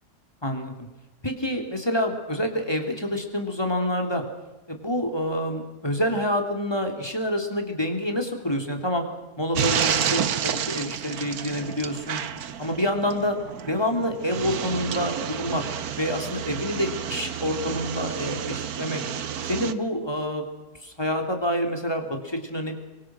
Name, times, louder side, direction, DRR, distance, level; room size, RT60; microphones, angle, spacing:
voice 1, 0.4-0.7 1.2-4.2 4.7-9.1 9.4-12.2 12.6-13.4 13.7-15.6 16.0-19.0 19.5-20.4 20.8-22.8, equal, 15° left, 4 dB, 3.5 m, -27 dB
sound 1, 9.5-19.7, right 8 dB, 90° right, 1.6 m, -30 dB
29.0 x 23.5 x 6.4 m, 1.1 s
omnidirectional pair, 1.5 m